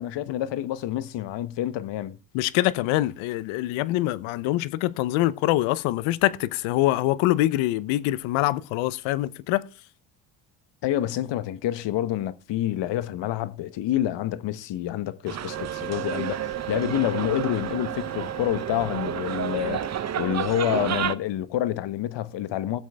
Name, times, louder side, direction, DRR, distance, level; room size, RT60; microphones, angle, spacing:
voice 1, 0.0-2.2 10.8-22.8, left 12 dB, 65° left, 1.1 m, -28 dB
voice 2, 2.3-9.6, left 16 dB, 80° left, 0.9 m, -24 dB
sound 1, 15.3-21.1, right 9 dB, 35° right, 0.8 m, -31 dB
Wind instrument woodwind instrument, 15.5-20.2, right 19 dB, 85° right, 1.7 m, -37 dB
17.0 x 7.6 x 3.5 m
supercardioid pair, 80°, 47 cm